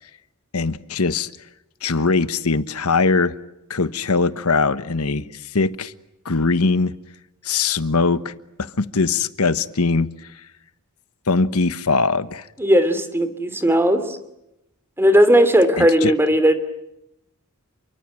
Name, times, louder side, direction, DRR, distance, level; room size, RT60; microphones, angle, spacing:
voice 1, 0.5-1.3 1.8-3.3 3.7-5.9 6.2-6.9 7.4-10.1 11.3-12.4 15.8-16.1, left 4 dB, 80° left, 14 dB, 1.3 m, -21 dB
voice 2, 12.6-14.2 15.0-16.5, equal, 10° right, 11 dB, 2.8 m, -16 dB
29.5 x 24.0 x 7.6 m, 0.86 s
head